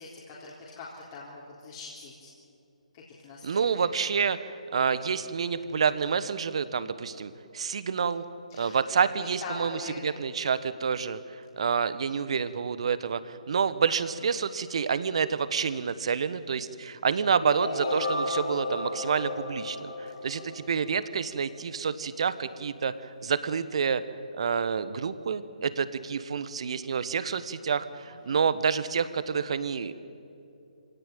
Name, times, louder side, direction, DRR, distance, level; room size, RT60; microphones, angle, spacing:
voice 1, 0.0-2.3 2.9-3.7 8.5-8.8 9.2-10.0 12.1-12.4 28.2-28.4, left 3 dB, 30° left, -5 dB, 3.7 m, -42 dB
voice 2, 3.4-8.2 8.6-11.2 11.6-22.9 23.2-24.0 24.4-29.9, right 6 dB, 50° right, 14 dB, 1.2 m, -28 dB
sound 1, 17.4-21.3, left 2 dB, 60° left, 8.0 m, -33 dB
25.5 x 17.5 x 9.3 m, 2.7 s
figure-of-eight pair, 140°, 4 cm